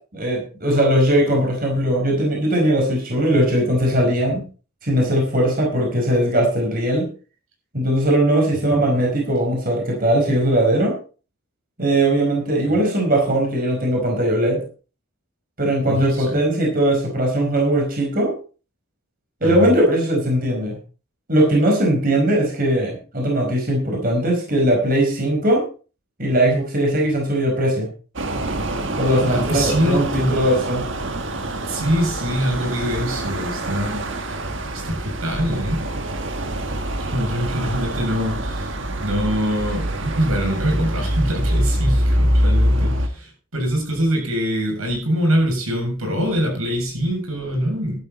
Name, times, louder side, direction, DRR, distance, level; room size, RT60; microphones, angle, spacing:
voice 1, 0.1-4.4 4.8-7.1 7.7-11.0 11.8-14.6 15.6-18.3 19.4-20.8 21.3-25.6 26.2-27.9 29.0-30.9, right 1 dB, 40° right, 0 dB, 4.9 m, -19 dB
voice 2, 15.9-16.4 19.4-19.7 29.3-30.5 31.6-34.3 34.7-35.8 37.0-48.0, equal, 85° right, 2 dB, 7.4 m, -24 dB
sound 1, 28.2-43.1, right 1 dB, 60° right, 1.5 m, -24 dB
13.0 x 12.5 x 4.2 m, 0.37 s
head